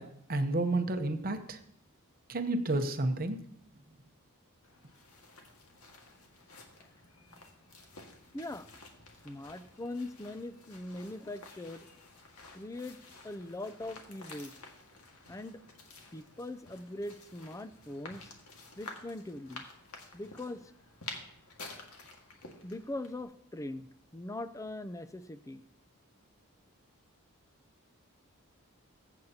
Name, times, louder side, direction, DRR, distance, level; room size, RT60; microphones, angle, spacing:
voice 1, 0.0-1.6 2.3-3.4, right 2 dB, 40° right, 7 dB, 0.8 m, -31 dB
sound 1, 4.6-23.2, left 3 dB, 75° left, 1.8 m, -51 dB
voice 2, 8.3-8.7 9.2-11.9 12.5-13.0 13.2-14.5 15.3-15.6 16.1-18.3 18.8-19.6 20.1-20.7 22.6-23.9 24.1-25.6, left 1 dB, 15° left, 12 dB, 0.5 m, -41 dB
21.5 x 8.0 x 2.8 m, 0.70 s
head